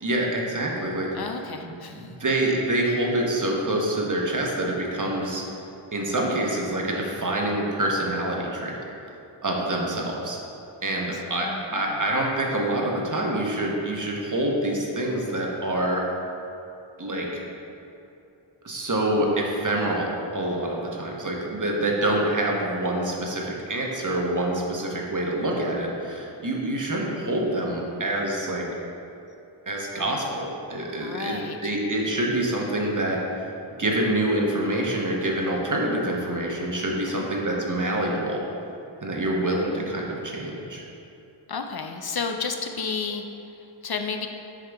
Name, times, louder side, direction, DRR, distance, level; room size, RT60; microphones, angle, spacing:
voice 1, 0.0-1.1 1.6-5.4 5.9-8.8 9.4-10.4 10.8-16.0 17.0-17.3 18.6-28.7 29.7-33.5 33.8-38.4 39.0-40.8, right 1 dB, 40° right, -1 dB, 1.1 m, -26 dB
voice 2, 1.1-2.1 11.1-12.0 31.0-31.7 36.9-37.3 41.5-44.3, left 5 dB, 55° left, 5 dB, 0.5 m, -33 dB
7.5 x 4.8 x 3.4 m, 2.8 s
wide cardioid pair, 65°, 46 cm